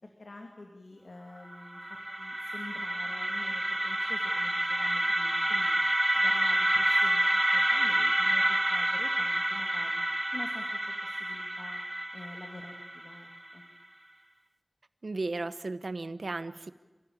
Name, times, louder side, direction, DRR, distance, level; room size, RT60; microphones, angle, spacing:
voice 1, 0.0-5.8 6.1-10.0 10.3-11.8 12.1-13.6, left 2 dB, 75° left, 3 dB, 2.6 m, -47 dB
sound 1, 1.5-13.5, right 1 dB, 25° right, 1.2 m, -28 dB
voice 2, 15.0-16.7, right 3 dB, 80° right, 14 dB, 1.0 m, -35 dB
29.5 x 16.5 x 8.8 m, 1.2 s
wide cardioid pair, 55°, 0 cm